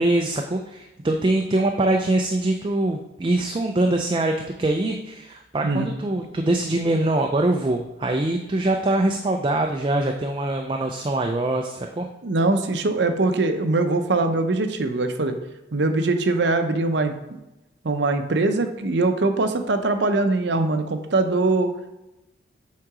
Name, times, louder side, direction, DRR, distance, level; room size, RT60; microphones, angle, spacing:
voice 1, 0.0-4.3 4.6-12.1, right 2 dB, 25° right, 3 dB, 0.4 m, -23 dB
voice 2, 12.2-15.4 15.7-17.1 17.8-21.7, right 2 dB, 65° right, 8 dB, 0.6 m, -22 dB
7.5 x 3.7 x 4.8 m, 0.96 s
head